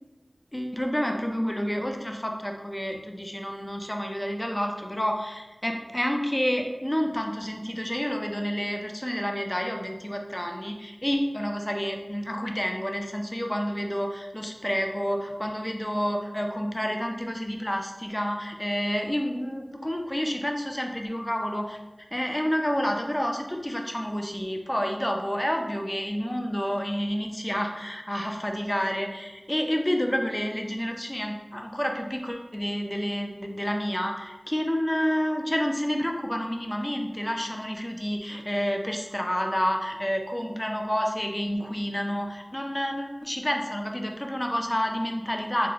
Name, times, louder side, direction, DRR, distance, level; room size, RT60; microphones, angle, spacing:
voice 1, 0.5-21.8 22.1-45.7, equal, 20° left, 3 dB, 0.4 m, -29 dB
2.8 x 2.2 x 3.9 m, 1.1 s
wide cardioid pair, 40°, 0 cm